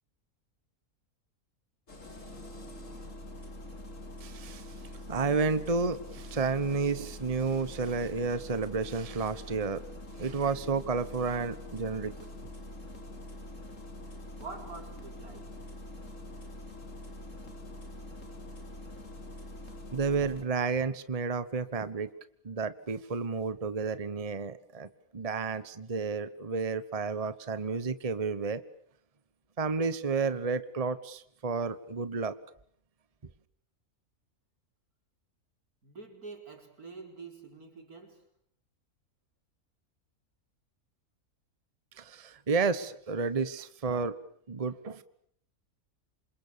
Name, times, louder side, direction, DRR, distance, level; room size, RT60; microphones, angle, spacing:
Engine starting, 1.9-20.4, left 1 dB, 60° left, 4.0 m, -45 dB
voice 1, 4.2-4.7 5.1-9.8 10.2-12.1 19.9-22.1 22.4-28.6 29.6-32.4 42.0-44.1 44.5-45.0, right 4 dB, 25° right, 1.2 m, -31 dB
voice 2, 14.4-15.6 35.8-38.3, right 4 dB, 85° right, 5.1 m, -46 dB
28.5 x 27.0 x 6.9 m
omnidirectional pair, 1.5 m